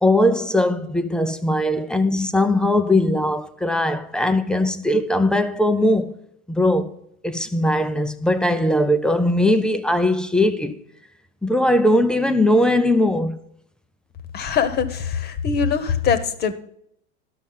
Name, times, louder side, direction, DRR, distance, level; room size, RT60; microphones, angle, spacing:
voice 1, 0.0-6.2 6.5-6.9 7.2-10.8 11.4-13.4, left 1 dB, 5° left, 0.3 m, -19 dB
voice 2, 14.3-16.5, left 6 dB, 30° left, 1.0 m, -22 dB
12.0 x 6.3 x 5.5 m
supercardioid pair, 135°, 33 cm